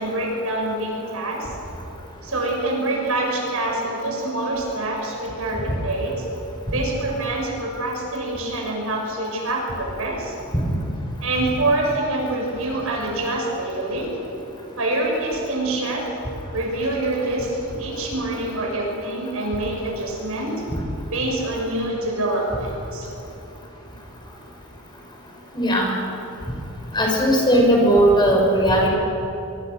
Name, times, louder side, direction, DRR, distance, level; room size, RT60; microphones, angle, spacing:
voice 1, 0.0-1.5 2.2-6.3 6.7-10.3 11.2-14.1 14.8-16.1 16.5-20.6 21.1-23.1, right 2 dB, 80° right, -1 dB, 6.9 m, -25 dB
voice 2, 25.5-25.9 26.9-28.9, right 1 dB, 20° left, 0 dB, 5.6 m, -17 dB
24.0 x 23.5 x 6.6 m, 2.9 s
head